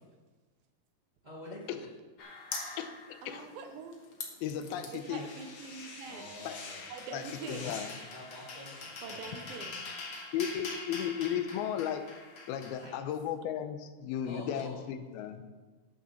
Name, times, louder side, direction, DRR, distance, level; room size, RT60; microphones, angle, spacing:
voice 1, 1.2-1.9 6.0-7.7 8.1-9.4 12.5-13.0 14.2-14.8, left 1 dB, 50° right, -6 dB, 0.5 m, -48 dB
sound 1, 2.2-3.7 3.9-12.8, left 3 dB, 65° left, 1.2 m, -44 dB
voice 2, 3.2-4.0 4.9-6.3 6.9-7.7 9.0-9.9, right 5 dB, 75° right, 6 dB, 2.6 m, -44 dB
voice 3, 4.4-5.3 6.5-6.6 7.1-7.9 10.3-12.0 12.5-15.4, left 9 dB, 90° left, 9 dB, 2.6 m, -35 dB
11.0 x 6.8 x 6.1 m, 1.3 s
omnidirectional pair, 4.4 m